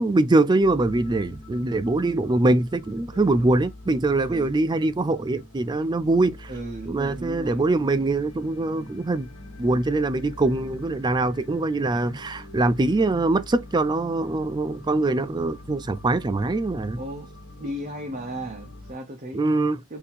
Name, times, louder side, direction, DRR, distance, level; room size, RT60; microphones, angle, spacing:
voice 1, 0.0-6.5 6.9-9.3 9.6-17.0 19.3-19.8, right 2 dB, 20° right, 0.3 m, -23 dB
sound 1, 0.6-18.9, left 1 dB, 85° left, 1.2 m, -44 dB
voice 2, 3.1-3.5 4.3-4.5 6.5-7.7 17.0-17.3 17.6-19.4 19.9-20.0, right 1 dB, 35° right, 0.8 m, -35 dB
3.9 x 2.7 x 4.3 m
head